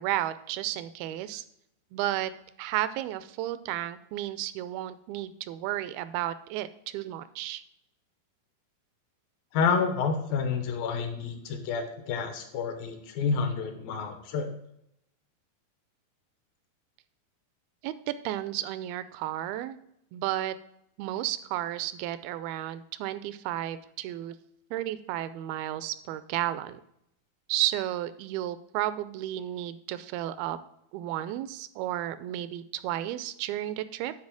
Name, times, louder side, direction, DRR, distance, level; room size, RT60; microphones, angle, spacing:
voice 1, 0.0-1.4 1.9-2.3 2.6-7.6 17.8-19.8 20.1-20.6 21.0-24.4 24.7-26.8 27.5-30.6 30.9-34.1, right 13 dB, 85° right, 14 dB, 2.4 m, -32 dB
voice 2, 9.5-14.5, left 5 dB, 75° left, 6 dB, 2.8 m, -29 dB
9.6 x 4.1 x 7.4 m, 0.77 s
omnidirectional pair, 4.3 m